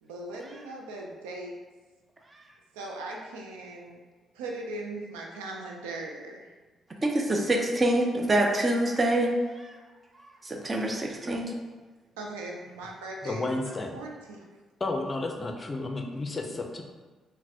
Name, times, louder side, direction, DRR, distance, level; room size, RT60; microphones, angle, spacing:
voice 1, 0.0-1.6 2.7-4.0 4.3-6.5 12.2-14.5, right 2 dB, 85° right, -1 dB, 0.4 m, -39 dB
voice 2, 7.0-9.7 10.4-11.5, right 1 dB, 35° right, 1 dB, 0.6 m, -26 dB
voice 3, 13.2-14.0 14.8-16.8, left 2 dB, 35° left, 3 dB, 0.4 m, -32 dB
3.8 x 2.1 x 2.7 m, 1.3 s
hypercardioid pair, 45°, 0 cm